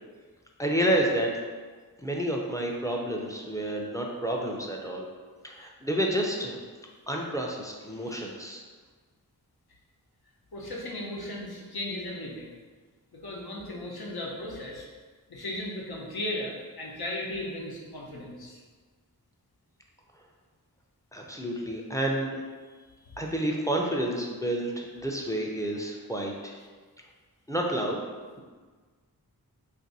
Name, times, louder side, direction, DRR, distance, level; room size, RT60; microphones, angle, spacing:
voice 1, 0.6-1.3 2.0-5.1 5.4-6.6 7.1-8.6 21.1-22.4 23.2-26.5 27.5-28.0, right 1 dB, 10° left, -1 dB, 0.4 m, -29 dB
voice 2, 7.9-8.3 10.5-12.5 13.1-14.9 15.3-18.6, left 1 dB, 75° left, -2 dB, 0.8 m, -36 dB
2.6 x 2.6 x 3.9 m, 1.4 s
wide cardioid pair, 55°, 38 cm